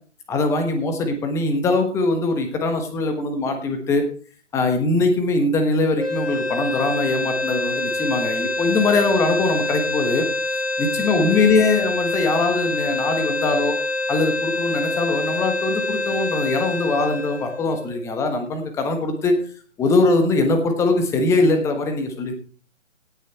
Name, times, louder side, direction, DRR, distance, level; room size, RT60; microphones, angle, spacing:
voice 1, 0.3-4.0 4.5-10.3 10.8-13.7 14.1-19.3 19.8-22.4, left 3 dB, 5° left, 5 dB, 1.2 m, -21 dB
sound 1, 6.0-18.2, left 2 dB, 50° left, 7.5 m, -26 dB
17.5 x 6.6 x 4.4 m, 0.41 s
figure-of-eight pair, 150°, 38 cm